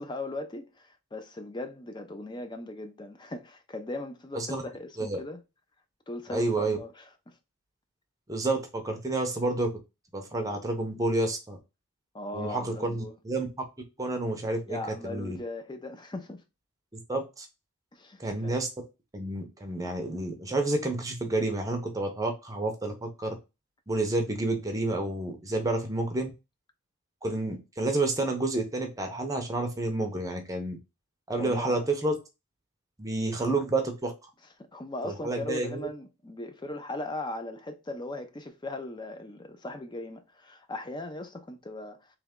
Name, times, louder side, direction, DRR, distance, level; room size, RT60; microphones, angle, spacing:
voice 1, 0.0-5.4 6.1-6.9 7.3-7.4 12.1-13.1 14.7-16.4 17.9-18.6 31.4-31.9 34.7-42.2, left 2 dB, 20° left, 0.5 m, -38 dB
voice 2, 6.3-6.8 8.3-9.7 10.1-11.6 12.3-13.5 14.0-14.8 15.0-15.4 16.9-17.5 18.2-18.7 19.1-23.4 23.9-26.3 27.2-30.8 31.3-32.1 33.0-34.1 35.0-35.9, right 2 dB, 15° right, 0.7 m, -29 dB
3.3 x 3.0 x 3.6 m
head